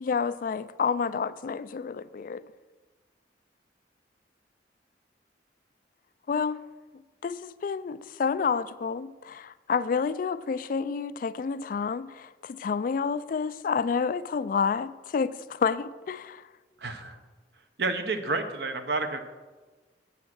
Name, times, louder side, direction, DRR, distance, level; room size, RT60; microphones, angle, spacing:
voice 1, 0.0-2.4 6.3-6.6 7.2-16.5, left 5 dB, 50° left, 0.3 m, -29 dB
voice 2, 16.8-17.1 17.8-19.2, right 3 dB, 70° right, 1.0 m, -29 dB
8.3 x 7.8 x 6.2 m
head